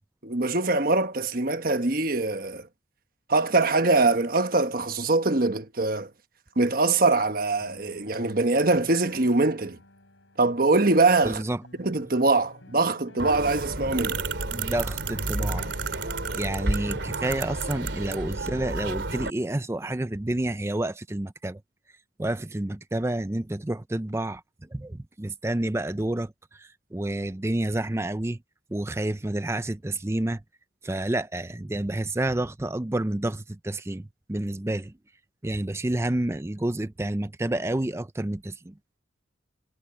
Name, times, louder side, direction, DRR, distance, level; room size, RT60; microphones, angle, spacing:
voice 1, 0.2-2.7 3.3-6.1 6.6-9.8 10.4-11.4 11.8-14.2, right 3 dB, 50° right, 1.3 m, -23 dB
sound 1, 6.5-16.4, left 1 dB, 85° left, 5.1 m, -53 dB
voice 2, 11.2-11.6 14.5-15.7 16.3-21.6 22.2-28.4 28.7-30.4 30.8-34.9 35.4-38.7, right 1 dB, 15° right, 0.5 m, -29 dB
sound 2, 13.2-19.3, right 3 dB, 75° right, 3.0 m, -30 dB
head